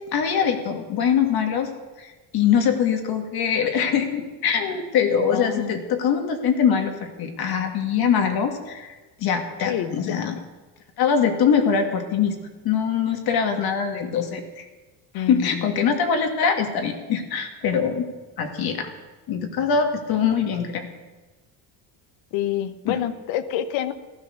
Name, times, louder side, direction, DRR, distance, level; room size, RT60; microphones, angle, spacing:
voice 1, 0.1-1.7 2.0-8.9 9.2-10.4 11.0-12.4 12.6-14.7 15.1-18.1 18.4-18.9 19.3-20.9 22.9-23.0, left 7 dB, 55° left, 5 dB, 2.2 m, -23 dB
voice 2, 5.3-5.8 9.7-10.2 15.1-15.7 22.3-23.9, left 10 dB, 80° left, 12 dB, 1.2 m, -27 dB
15.0 x 13.0 x 6.5 m, 1.2 s
cardioid pair, 160°, 45 cm